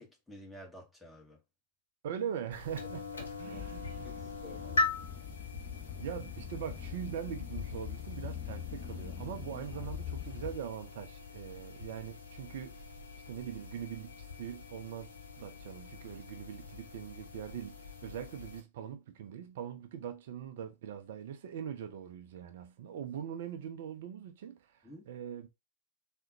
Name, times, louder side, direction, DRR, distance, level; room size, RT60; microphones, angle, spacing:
voice 1, 0.0-1.4 3.5-3.6 4.0-4.9 24.8-25.1, left 1 dB, 5° left, 1.0 m, -51 dB
voice 2, 2.0-4.2 6.0-12.9 13.3-15.1 15.4-25.5, right 9 dB, 55° right, 0.4 m, -42 dB
sound 1, 2.5-18.6, left 3 dB, 70° left, 0.6 m, -42 dB
sound 2, 3.5-10.6, left 9 dB, 30° left, 0.8 m, -43 dB
3.6 x 2.1 x 2.6 m
figure-of-eight pair, 90°, 0 cm